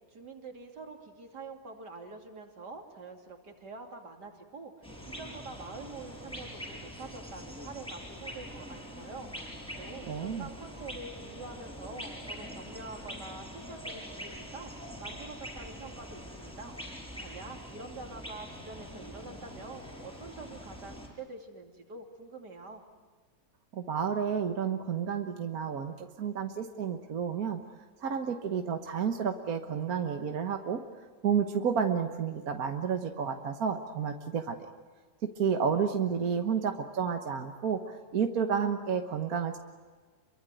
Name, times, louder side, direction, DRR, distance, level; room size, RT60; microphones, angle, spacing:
voice 1, 0.1-16.8 17.2-22.8, right 3 dB, 85° right, 3 dB, 3.4 m, -46 dB
sound 1, 4.8-21.1, equal, 5° left, 6.3 m, -44 dB
voice 2, 10.1-10.5 23.7-27.6 28.0-30.8 31.2-34.6 35.2-39.6, right 7 dB, 60° right, 5 dB, 1.7 m, -31 dB
27.5 x 23.0 x 9.1 m, 1.4 s
omnidirectional pair, 1.7 m